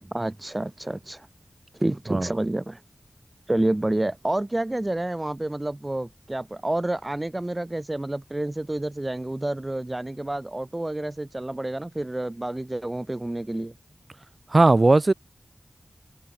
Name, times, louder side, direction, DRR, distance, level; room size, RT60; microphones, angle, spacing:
voice 1, 0.0-1.3 1.7-2.8 3.5-13.7, right 1 dB, 30° right, 0.7 m, -29 dB
voice 2, 14.5-15.1, right 2 dB, 45° right, 1.0 m, -17 dB
cardioid pair, 45°, 0 cm